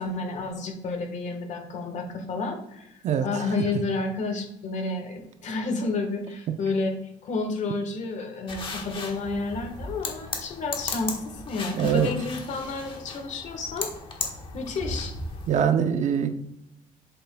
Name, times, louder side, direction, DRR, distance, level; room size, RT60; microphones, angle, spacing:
voice 1, 0.0-13.9 14.5-15.1, left 3 dB, 55° left, 4 dB, 1.4 m, -30 dB
sound 1, 8.5-15.6, left 3 dB, 35° left, 1.4 m, -36 dB
voice 2, 11.7-12.1 15.5-16.3, right 8 dB, 55° right, 9 dB, 0.6 m, -23 dB
7.9 x 7.6 x 2.3 m, 0.84 s
cardioid pair, 140°, 15 cm